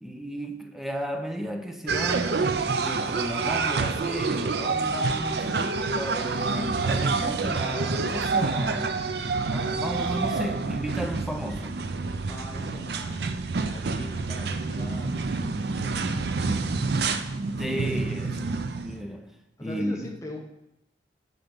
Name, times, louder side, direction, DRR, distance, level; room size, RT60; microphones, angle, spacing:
voice 1, 0.0-11.8 17.6-18.5 18.8-19.3 19.6-20.1, equal, ahead, 4 dB, 0.7 m, -34 dB
sound 1, 1.9-19.0, right 4 dB, 65° right, 0.5 m, -28 dB
voice 2, 12.3-16.0 17.5-18.0 19.6-20.4, left 1 dB, 20° left, 1 dB, 1.0 m, -41 dB
7.8 x 5.8 x 5.2 m, 0.90 s
head